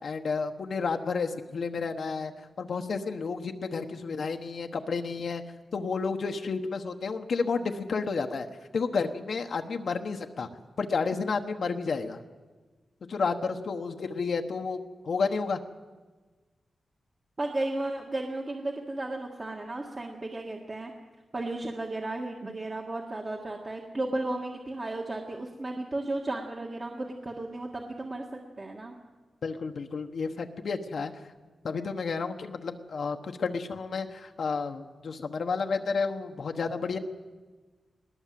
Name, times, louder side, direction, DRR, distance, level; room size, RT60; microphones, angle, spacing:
voice 1, 0.0-2.3 2.6-5.4 5.7-8.5 8.7-10.5 10.8-12.2 13.1-15.6 29.4-31.1 31.6-37.0, left 4 dB, 65° left, 4 dB, 1.1 m, -31 dB
voice 2, 17.4-20.9 21.3-28.9, right 2 dB, 30° right, 1 dB, 1.7 m, -34 dB
20.5 x 19.0 x 7.6 m, 1.3 s
wide cardioid pair, 120°, 0 cm